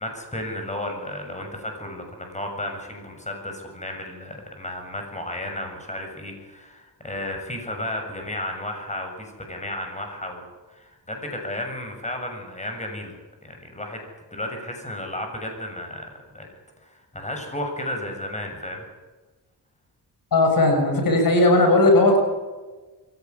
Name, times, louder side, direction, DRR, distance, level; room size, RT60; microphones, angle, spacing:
voice 1, 0.0-14.0 14.3-16.5 16.8-18.8, left 1 dB, 20° left, 3 dB, 7.6 m, -33 dB
voice 2, 20.3-22.2, left 2 dB, 70° left, 4 dB, 6.3 m, -17 dB
23.0 x 17.0 x 9.8 m, 1.3 s
cardioid pair, 95°, 35 cm